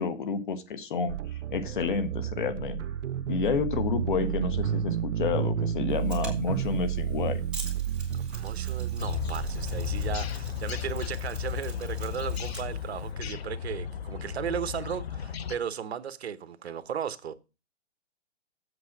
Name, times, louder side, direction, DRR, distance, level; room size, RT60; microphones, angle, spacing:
voice 1, 0.0-2.8 3.3-7.4, left 5 dB, 45° left, 1.2 m, -30 dB
sound 1, 1.1-10.2, right 9 dB, 85° right, 0.5 m, -31 dB
Mechanisms, 5.9-13.1, right 4 dB, ahead, 2.6 m, -46 dB
voice 2, 8.1-17.3, right 8 dB, 60° right, 1.0 m, -36 dB
sound 2, 9.0-15.6, left 8 dB, 60° left, 0.9 m, -34 dB
8.1 x 5.3 x 7.2 m
hypercardioid pair, 165°, 36 cm